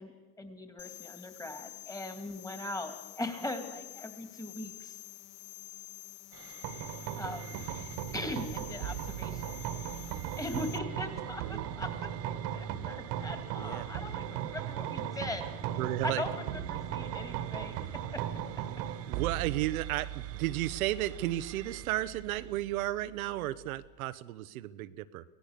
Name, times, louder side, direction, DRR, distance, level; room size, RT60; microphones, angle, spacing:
voice 1, 0.0-5.0 7.2-7.6 8.1-9.6 10.4-15.4 16.0-18.2, left 2 dB, 10° left, 7 dB, 2.7 m, -40 dB
sound 1, 0.8-10.8, left 15 dB, 45° left, 0.9 m, -48 dB
sound 2, 6.3-22.6, right 11 dB, 35° right, 1.1 m, -51 dB
sound 3, 6.6-23.8, right 10 dB, 60° right, 1.8 m, -38 dB
voice 2, 13.6-13.9 14.6-14.7 15.8-16.2 19.1-25.2, right 15 dB, 75° right, 13 dB, 1.0 m, -33 dB
24.5 x 17.0 x 6.7 m, 1.2 s
hypercardioid pair, 100°, 42 cm